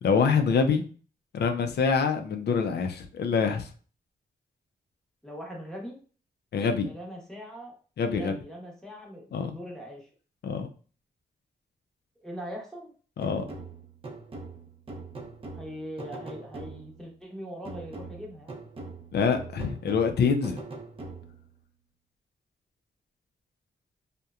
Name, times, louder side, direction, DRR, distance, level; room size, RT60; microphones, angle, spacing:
voice 1, 0.0-0.8 1.3-3.7 6.5-6.9 8.0-8.3 9.3-9.5 10.4-10.7 13.2-13.4 19.1-20.6, left 5 dB, 75° left, 6 dB, 0.4 m, -25 dB
voice 2, 5.2-6.0 6.8-7.7 8.1-10.1 12.2-12.9 15.5-18.6, equal, 5° left, -2 dB, 0.8 m, -41 dB
sound 1, 13.2-17.1 17.6-21.5, right 3 dB, 35° right, 0.6 m, -42 dB
2.8 x 2.1 x 2.3 m, 0.40 s
cardioid pair, 85°, 17 cm